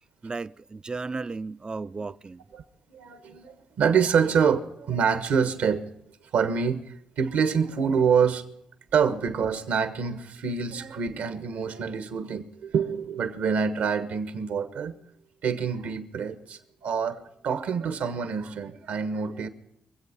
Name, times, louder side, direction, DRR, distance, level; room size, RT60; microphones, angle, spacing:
voice 1, 0.2-2.4, right 3 dB, 30° right, 0.4 m, -34 dB
voice 2, 2.9-5.9 6.3-8.4 8.9-14.9 15.4-19.5, right 6 dB, 75° right, 1.4 m, -26 dB
24.0 x 8.1 x 5.5 m
supercardioid pair, 55°, 3 cm